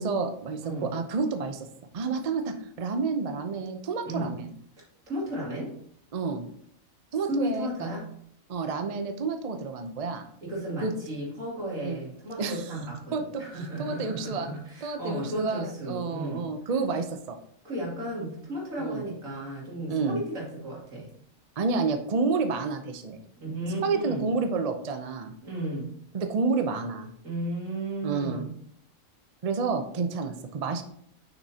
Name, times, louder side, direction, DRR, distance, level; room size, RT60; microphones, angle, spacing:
voice 1, 0.0-1.7 1.9-4.5 6.1-6.5 7.1-7.9 8.5-10.2 10.8-10.9 11.8-12.0 12.4-12.7 13.1-13.4 13.8-14.5 14.8-17.4 18.8-19.0 19.9-20.2 21.6-23.2 23.8-25.3 26.1-27.1 28.0-28.5 29.4-30.8, right 4 dB, 45° right, 7 dB, 0.5 m, -29 dB
voice 2, 4.0-4.4 5.1-5.7 7.3-8.1 10.4-16.4 17.6-21.1 23.4-24.3 25.4-25.9 27.2-28.5, right 1 dB, 80° right, -4 dB, 2.9 m, -34 dB
6.5 x 6.1 x 2.8 m, 0.67 s
omnidirectional pair, 1.4 m